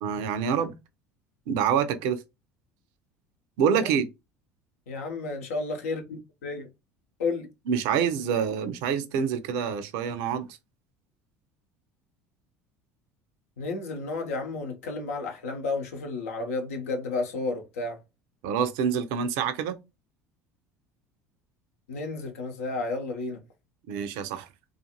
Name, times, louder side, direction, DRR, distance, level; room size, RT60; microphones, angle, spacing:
voice 1, 0.0-0.8 1.5-2.2 3.6-4.1 7.7-10.5 18.4-19.8 23.9-24.5, right 7 dB, 65° right, 0.5 m, -26 dB
voice 2, 4.9-6.7 7.2-7.5 13.6-18.0 21.9-23.4, left 3 dB, 75° left, 0.7 m, -32 dB
2.4 x 2.4 x 2.8 m
hypercardioid pair, 65°, 8 cm